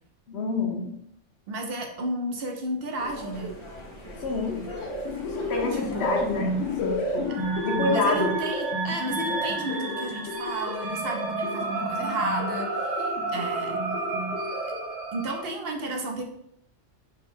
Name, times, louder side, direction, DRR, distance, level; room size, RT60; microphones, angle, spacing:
voice 1, 0.3-0.9 4.2-4.6 5.3-7.3 7.6-8.3, left 3 dB, 60° left, 0 dB, 1.0 m, -28 dB
voice 2, 1.5-3.5 5.7-6.2 7.9-13.8 15.1-16.2, right 1 dB, 55° right, 2 dB, 0.9 m, -32 dB
sound 1, 3.0-7.7, equal, 30° left, 0.8 m, -41 dB
sound 2, 4.5-15.0, left 1 dB, 90° left, 0.9 m, -32 dB
sound 3, 7.3-15.4, right 3 dB, 80° right, 1.0 m, -32 dB
3.9 x 2.4 x 4.2 m, 0.72 s
omnidirectional pair, 1.3 m